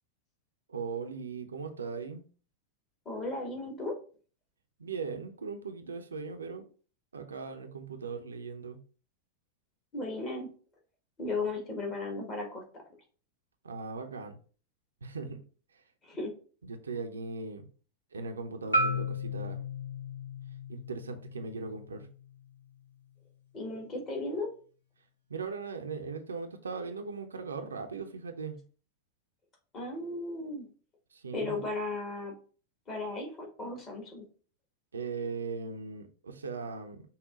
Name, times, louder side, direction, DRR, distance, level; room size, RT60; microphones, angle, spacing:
voice 1, 0.7-2.2 4.8-6.6 7.1-8.8 13.6-14.4 15.0-15.4 16.6-17.7 18.1-19.6 20.7-22.1 25.3-28.6 31.1-31.6 34.9-37.0, right 4 dB, 75° right, 0.5 m, -39 dB
voice 2, 3.0-3.9 9.9-10.5 11.2-12.8 16.0-16.3 23.5-24.5 29.7-30.7 31.3-32.3 32.9-34.3, left 2 dB, 30° left, 1.5 m, -35 dB
Marimba xylophone, 18.7-22.9, left 1 dB, 85° left, 0.9 m, -35 dB
5.6 x 2.2 x 3.7 m
figure-of-eight pair, 90°, 0 cm